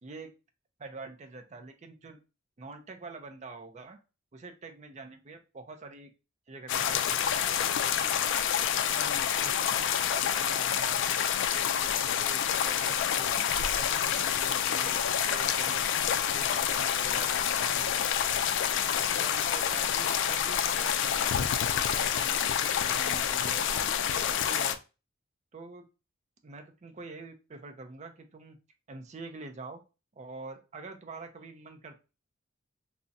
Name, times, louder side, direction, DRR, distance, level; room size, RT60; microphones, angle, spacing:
voice 1, 0.0-0.3 0.8-2.2 2.6-4.0 4.3-6.1 6.5-8.2 8.7-11.0 11.5-13.4 13.7-18.4 19.0-21.3 21.7-23.6 24.1-24.8 25.5-25.9 26.4-28.6 28.9-29.8 30.2-32.0, right 3 dB, 35° right, 7 dB, 0.5 m, -46 dB
sound 1, 6.7-24.8, left 9 dB, 60° left, 0.3 m, -28 dB
3.7 x 2.0 x 2.6 m, 0.30 s
head